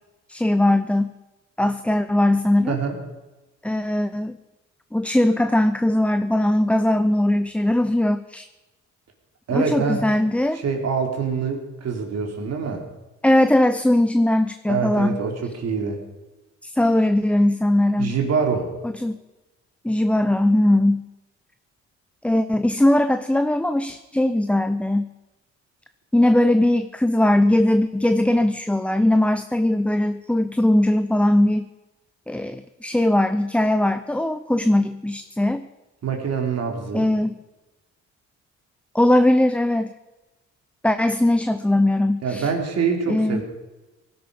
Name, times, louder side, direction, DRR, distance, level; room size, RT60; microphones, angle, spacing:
voice 1, 0.3-1.1 1.6-2.8 3.6-4.4 4.9-8.5 9.5-10.6 13.2-15.2 16.6-18.1 18.8-19.2 19.8-21.1 22.2-25.1 26.1-31.7 32.3-35.7 36.9-37.4 38.9-39.9 40.8-42.5 43.1-43.4, left 1 dB, 5° left, 10 dB, 0.6 m, -20 dB
voice 2, 2.7-3.0 9.5-10.0 10.5-12.8 14.7-16.0 18.0-18.7 36.0-37.1 42.2-43.4, right 5 dB, 55° right, 3 dB, 3.5 m, -25 dB
18.5 x 12.0 x 5.2 m, 1.1 s
cardioid pair, 90°, 30 cm